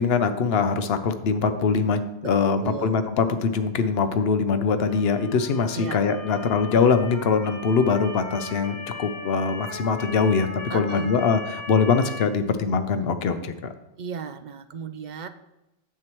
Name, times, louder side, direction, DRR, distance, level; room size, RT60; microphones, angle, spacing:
voice 1, 0.0-13.5, left 5 dB, 70° left, 9 dB, 0.9 m, -23 dB
voice 2, 2.2-3.0 5.7-6.0 6.3-6.4 10.7-11.1 14.0-15.3, right 6 dB, 55° right, 10 dB, 0.6 m, -35 dB
Motor vehicle (road) / Siren, 4.8-12.3, left 2 dB, 20° left, 0.7 m, -38 dB
9.2 x 7.7 x 3.0 m, 0.92 s
omnidirectional pair, 1.1 m